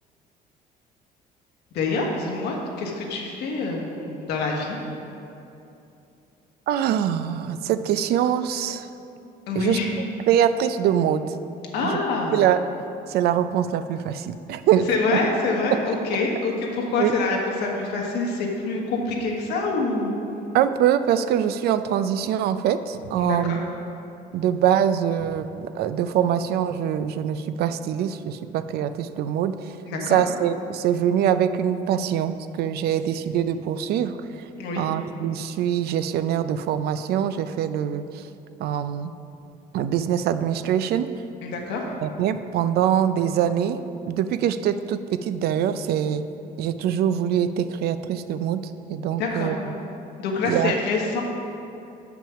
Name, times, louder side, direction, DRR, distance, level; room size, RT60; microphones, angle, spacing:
voice 1, 1.7-4.8 9.5-9.9 11.7-12.4 14.9-20.1 23.2-23.6 29.9-30.2 34.6-34.9 41.4-41.9 49.2-49.5 50.2-51.2, left 3 dB, 80° left, 0 dB, 1.4 m, -26 dB
voice 2, 6.7-8.9 9.6-9.8 10.3-11.3 11.8-11.9 12.3-12.6 13.1-15.2 15.7-15.8 17.0-17.1 20.5-23.6 24.3-29.7 30.1-34.5 34.8-38.3 38.6-39.1 39.7-41.1 42.0-43.8 44.0-46.2 46.6-49.6 50.4-50.7, right 9 dB, 70° right, 11 dB, 0.4 m, -23 dB
7.1 x 6.0 x 5.7 m, 2.8 s
cardioid pair, 110°, 17 cm